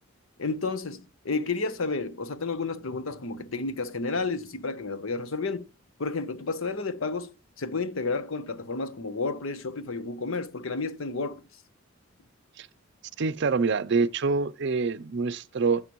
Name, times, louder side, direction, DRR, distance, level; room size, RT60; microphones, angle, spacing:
voice 1, 0.4-5.7 6.0-7.3 7.6-11.4, left 3 dB, 85° left, 0.8 m, -31 dB
voice 2, 13.2-15.8, right 4 dB, 60° right, 0.5 m, -26 dB
15.5 x 5.8 x 3.0 m
head